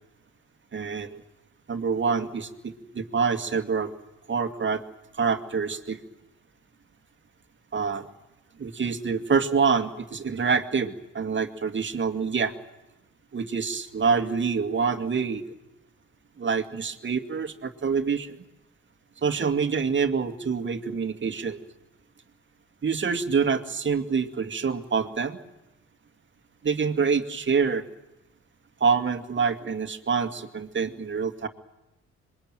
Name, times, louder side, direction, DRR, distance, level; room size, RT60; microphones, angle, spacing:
voice 1, 0.7-1.2 1.7-3.9 4.3-4.8 5.2-6.0 7.7-8.1 8.6-12.5 13.3-15.4 16.4-18.4 19.2-21.6 22.8-25.4 26.6-27.8 28.8-31.5, right 5 dB, 40° right, 8 dB, 2.3 m, -26 dB
26.0 x 23.0 x 9.1 m, 0.95 s
cardioid pair, 90°, 30 cm